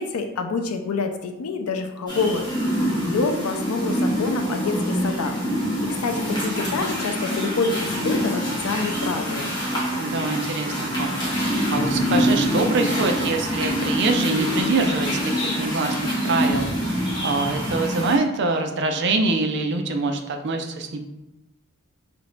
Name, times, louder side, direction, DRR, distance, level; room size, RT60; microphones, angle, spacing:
voice 1, 0.0-2.5 3.1-5.4 5.6-5.8 6.0-9.5, left 4 dB, 75° left, 6 dB, 0.5 m, -27 dB
sound 1, 2.1-18.2, equal, 20° left, 0.9 m, -25 dB
voice 2, 10.0-11.1 11.7-21.1, right 3 dB, 50° right, 5 dB, 0.4 m, -25 dB
3.0 x 2.6 x 4.3 m, 0.94 s
head